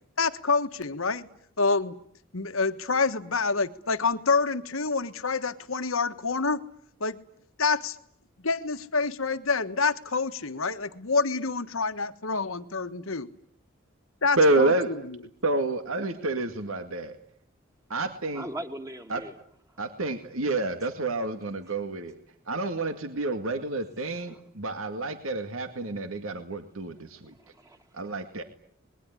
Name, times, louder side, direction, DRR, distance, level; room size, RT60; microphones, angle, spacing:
voice 1, 0.2-1.3 1.6-1.9 2.3-6.6 7.0-7.2 7.6-8.0 8.4-13.3 14.2-14.7, left 4 dB, 80° left, 9 dB, 1.5 m, -27 dB
voice 2, 14.4-14.9 15.4-17.2 17.9-18.5 19.1-19.2 19.8-22.2 22.5-27.3 27.9-28.4, right 2 dB, 85° right, 8 dB, 2.1 m, -28 dB
voice 3, 18.3-19.4 24.3-24.4 27.4-27.8, right 1 dB, 15° right, 5 dB, 2.3 m, -39 dB
26.5 x 21.5 x 9.9 m, 0.67 s
head